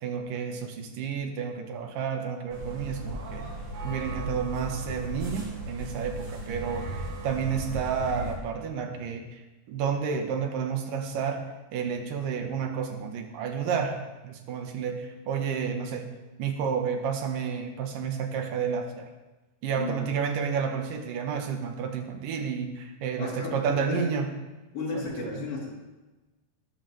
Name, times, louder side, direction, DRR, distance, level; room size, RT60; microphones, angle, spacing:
voice 1, 0.0-3.5 3.8-9.4 9.7-11.4 11.7-14.0 14.2-16.1 16.4-19.1 19.6-24.3 24.9-25.1 25.3-25.5, right 6 dB, 75° right, 4 dB, 2.9 m, -31 dB
sound 1, 2.5-8.4, right 1 dB, 55° right, 4.2 m, -36 dB
voice 2, 19.8-20.1 23.2-24.2 24.7-25.7, left 3 dB, 90° left, -5 dB, 5.4 m, -34 dB
20.0 x 12.0 x 3.4 m, 1.1 s
omnidirectional pair, 4.0 m